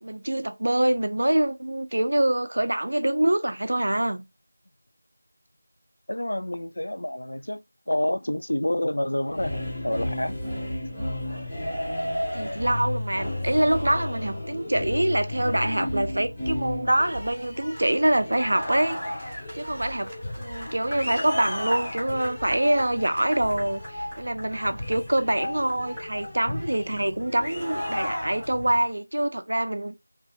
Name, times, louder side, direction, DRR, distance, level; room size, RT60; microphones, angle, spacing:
voice 1, 0.0-4.2 12.3-19.0 19.3-20.1 20.4-30.0, right 1 dB, 50° right, 0.5 m, -25 dB
voice 2, 6.1-10.4, left 1 dB, 85° left, 0.3 m, -28 dB
sound 1, 9.3-28.8, left 1 dB, 10° left, 0.6 m, -33 dB
2.9 x 2.6 x 3.5 m
figure-of-eight pair, 180°, 0 cm